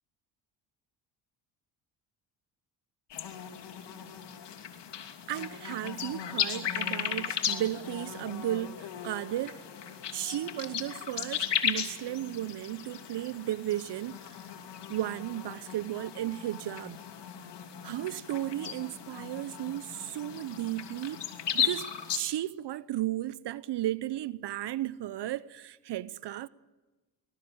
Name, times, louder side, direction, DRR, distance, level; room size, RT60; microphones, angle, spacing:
sound 1, 3.1-22.2, left 9 dB, 55° left, 3.0 m, -36 dB
voice 1, 5.3-9.6 10.1-14.3 14.9-17.0 17.8-21.3 21.5-26.5, right 14 dB, 55° right, 0.9 m, -34 dB
24.5 x 20.5 x 8.8 m
supercardioid pair, 65°, 48 cm